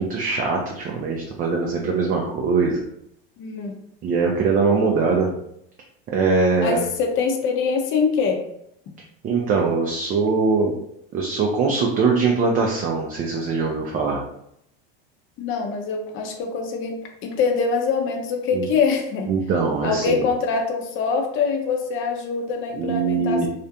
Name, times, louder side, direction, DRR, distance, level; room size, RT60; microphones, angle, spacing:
voice 1, 0.0-2.8 4.0-5.3 6.1-6.8 9.2-10.7 11.1-14.2 18.5-18.7 19.3-20.3 22.7-23.5, right 4 dB, 30° right, 0 dB, 0.4 m, -22 dB
voice 2, 3.4-3.7 6.6-8.4 15.4-19.3 19.8-23.5, left 5 dB, 40° left, 3 dB, 0.6 m, -24 dB
2.4 x 2.1 x 2.7 m, 0.74 s
hypercardioid pair, 100°, 31 cm